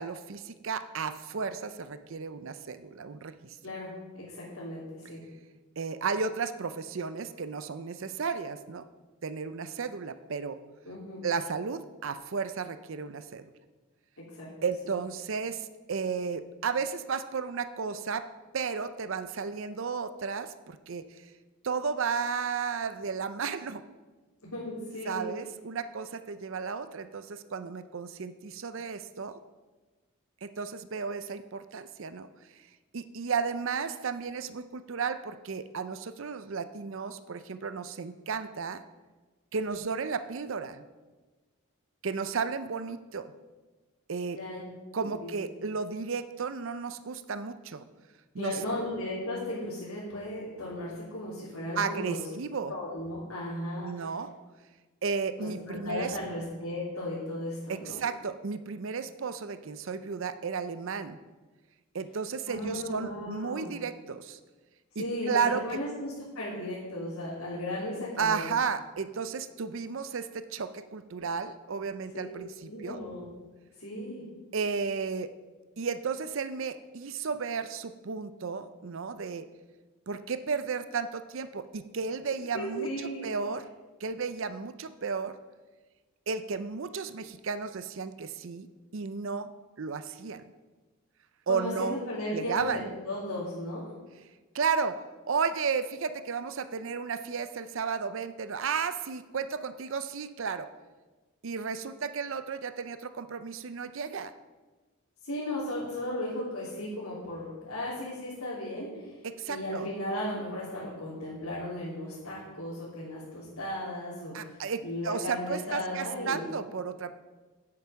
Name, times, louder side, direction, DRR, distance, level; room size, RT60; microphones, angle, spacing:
voice 1, 0.0-3.6 5.8-8.8 9.2-10.6 11.2-13.5 14.6-18.3 18.5-21.3 21.6-23.8 25.0-29.4 30.4-32.3 32.9-38.8 39.5-40.8 42.0-43.3 44.1-44.4 44.9-47.8 48.3-48.6 51.8-52.7 53.8-54.3 55.0-56.2 57.7-61.2 61.9-64.4 65.0-65.8 68.2-72.5 72.8-73.0 74.5-75.3 75.8-79.5 80.1-82.9 83.2-83.7 84.0-85.4 86.3-88.7 88.9-89.5 89.8-90.4 91.5-92.0 92.3-92.8 94.5-95.0 95.3-100.7 101.4-104.3 109.2-109.9 114.3-117.1, right 5 dB, 60° right, 12 dB, 0.5 m, -33 dB
voice 2, 4.2-5.2 10.8-11.2 14.2-14.5 24.5-25.3 44.2-44.6 45.0-45.3 48.4-52.2 52.7-54.1 55.4-58.0 62.5-63.7 65.0-68.5 72.1-72.3 72.7-73.3 73.8-74.2 82.5-83.3 91.5-93.8 105.2-109.1 109.5-114.5 114.8-116.4, left 1 dB, 75° left, -8 dB, 3.2 m, -36 dB
9.8 x 8.6 x 5.8 m, 1.3 s
head